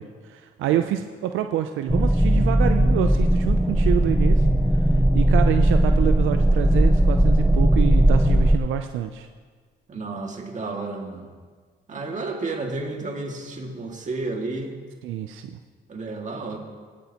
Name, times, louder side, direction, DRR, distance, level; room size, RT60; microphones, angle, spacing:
voice 1, 0.0-4.4 4.8-4.9 5.1-9.3 15.0-15.6, right 11 dB, 80° right, 7 dB, 0.5 m, -27 dB
sound 1, 1.9-8.6, right 1 dB, ahead, 0.3 m, -18 dB
voice 2, 9.9-11.3 11.9-14.8 15.9-16.6, right 3 dB, 40° right, 1 dB, 2.0 m, -31 dB
17.0 x 8.5 x 2.9 m, 1.6 s
cardioid pair, 90°, 20 cm